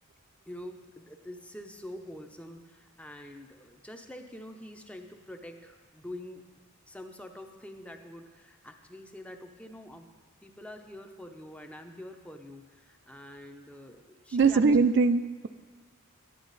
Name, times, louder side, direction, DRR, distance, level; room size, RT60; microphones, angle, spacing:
voice 1, 0.5-6.5 6.9-10.1 10.4-14.6, left 1 dB, 5° left, 5 dB, 0.6 m, -46 dB
voice 2, 14.3-15.5, right 4 dB, 55° right, 10 dB, 0.3 m, -22 dB
12.0 x 10.0 x 4.0 m, 1.4 s
head